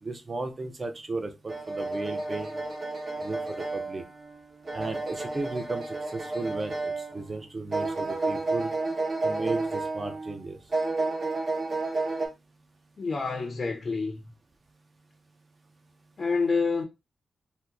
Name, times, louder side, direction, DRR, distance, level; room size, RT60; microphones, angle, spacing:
voice 1, 0.0-2.6 3.2-4.0 4.7-8.7 9.2-10.6, right 3 dB, 35° right, 0.6 m, -35 dB
sound 1, 1.5-7.3 7.7-10.4 10.7-12.3, right 3 dB, 50° right, 1.2 m, -31 dB
voice 2, 13.0-14.3 16.2-16.8, left 4 dB, 45° left, 0.5 m, -28 dB
2.8 x 2.2 x 3.5 m
wide cardioid pair, 100°, 0 cm